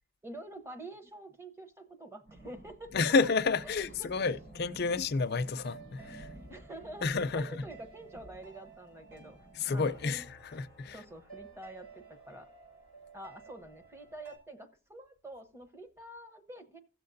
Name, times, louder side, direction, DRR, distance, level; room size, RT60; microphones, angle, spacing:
voice 1, 0.2-2.9 3.6-4.3 4.8-4.9 6.3-9.4 9.7-12.5 13.1-16.8, right 1 dB, 10° right, 0.8 m, -48 dB
sound 1, 2.3-9.9, right 1 dB, 60° right, 4.8 m, -53 dB
voice 2, 2.9-6.3 7.0-7.6 9.6-11.0, left 4 dB, 50° left, 0.5 m, -30 dB
sound 2, 4.2-14.4, right 4 dB, 75° right, 5.1 m, -54 dB
16.5 x 6.7 x 2.6 m
head